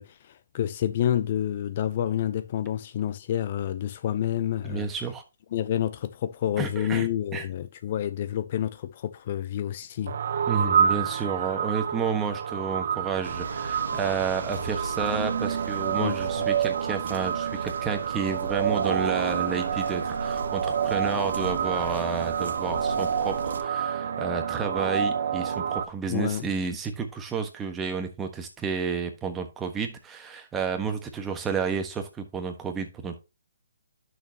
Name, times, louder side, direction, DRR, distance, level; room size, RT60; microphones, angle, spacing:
voice 1, 0.0-4.9 5.5-10.1 16.0-16.2 26.1-26.5, left 10 dB, 40° left, 0.5 m, -29 dB
voice 2, 4.6-5.2 6.6-7.4 10.5-33.2, right 6 dB, 10° right, 1.4 m, -31 dB
sound 1, 10.1-25.8, right 7 dB, 60° right, 0.6 m, -28 dB
sound 2, 13.2-23.6, right 3 dB, 75° right, 1.4 m, -38 dB
10.5 x 6.4 x 2.9 m
hypercardioid pair, 150°, 0 cm